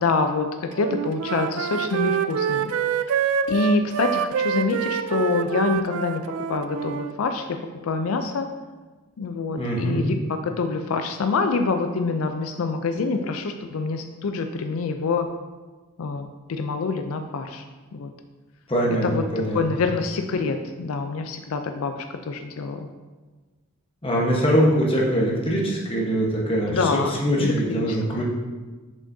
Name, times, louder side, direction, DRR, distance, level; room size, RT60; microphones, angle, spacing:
voice 1, 0.0-2.7 3.5-6.2 6.5-7.6 7.8-8.5 9.2-10.1 10.4-15.3 16.0-17.6 17.9-18.1 19.0-19.2 19.5-21.9 22.3-22.9 26.7-28.2, left 4 dB, 80° left, 6 dB, 0.4 m, -26 dB
Wind instrument woodwind instrument, 0.7-7.1, right 7 dB, 80° right, 0.3 m, -26 dB
voice 2, 9.6-10.0 18.7-19.8 24.0-28.2, equal, 25° left, -3 dB, 1.1 m, -23 dB
7.1 x 5.2 x 2.7 m, 1.3 s
head